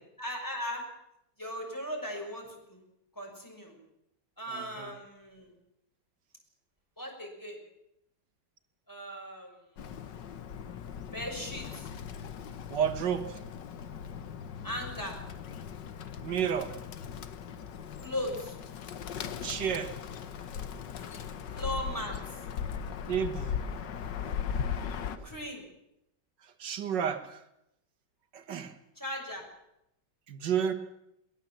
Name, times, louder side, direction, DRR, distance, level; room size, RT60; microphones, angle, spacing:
voice 1, 0.2-0.9 1.4-2.8 3.2-3.8 4.4-5.6 7.0-7.6 8.9-9.6 11.1-11.9 14.6-15.2 18.0-18.6 21.5-22.4 25.2-25.6 29.0-29.5, equal, 10° left, 1 dB, 6.1 m, -38 dB
voice 2, 4.5-4.9 12.7-13.4 16.2-16.7 19.4-19.9 23.1-23.6 25.2-25.3 26.6-27.4 28.3-28.7 30.3-30.7, right 8 dB, 85° right, 8 dB, 2.0 m, -31 dB
Bird, 9.8-25.2, left 7 dB, 90° left, 1.8 m, -38 dB
22.0 x 19.5 x 7.5 m, 0.82 s
omnidirectional pair, 1.8 m